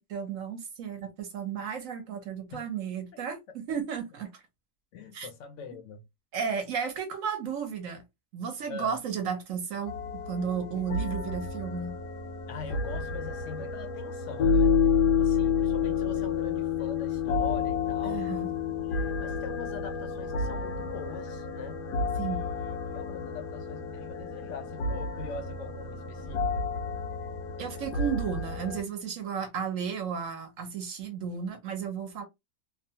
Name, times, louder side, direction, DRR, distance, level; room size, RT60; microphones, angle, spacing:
voice 1, 0.0-4.4 5.1-5.3 6.3-8.0 8.3-9.9 10.3-12.0 18.0-18.5 22.2-22.5 27.6-32.2, right 7 dB, 65° right, 0.9 m, -33 dB
voice 2, 4.9-6.0 8.7-9.0 12.5-14.7 15.2-18.3 18.8-21.9 22.2-26.6, left 6 dB, 70° left, 0.7 m, -43 dB
sound 1, 9.9-28.8, left 5 dB, 85° left, 1.1 m, -30 dB
2.7 x 2.2 x 2.7 m
omnidirectional pair, 1.7 m